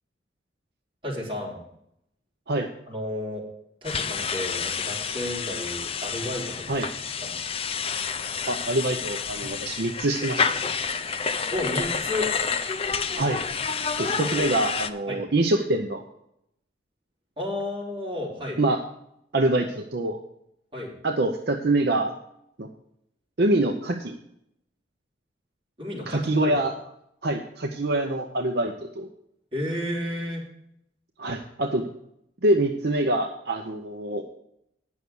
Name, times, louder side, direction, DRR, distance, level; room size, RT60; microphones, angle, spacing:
voice 1, 1.0-1.6 2.9-3.4 3.8-6.9 7.2-7.4 11.5-12.3 15.1-15.2 17.4-18.6 20.7-20.9 25.8-26.6 29.5-30.4, left 1 dB, 30° right, -5 dB, 3.5 m, -32 dB
sound 1, 3.8-14.9, left 6 dB, 30° left, 0.5 m, -29 dB
voice 2, 8.5-10.6 13.2-13.4 14.0-16.0 18.6-18.8 19.3-20.2 21.0-22.1 22.6-22.7 23.4-24.2 26.1-26.7 27.2-29.1 31.2-31.9 32.4-34.2, right 2 dB, 60° right, 3 dB, 0.7 m, -25 dB
9.4 x 6.4 x 7.0 m, 0.77 s
head